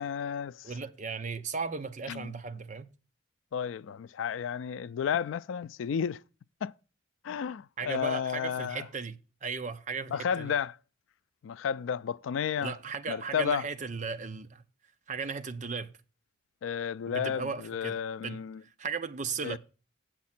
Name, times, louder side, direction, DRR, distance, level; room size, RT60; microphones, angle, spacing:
voice 1, 0.0-0.7 2.1-2.3 3.5-6.2 6.6-6.7 7.2-8.9 10.1-10.8 11.4-12.7 13.1-13.6 16.6-18.6 19.4-19.6, left 7 dB, 90° left, 0.3 m, -32 dB
voice 2, 0.6-2.9 7.8-10.5 12.6-14.6 15.1-15.9 17.1-19.6, right 5 dB, 40° right, 0.6 m, -36 dB
8.2 x 7.4 x 4.3 m
head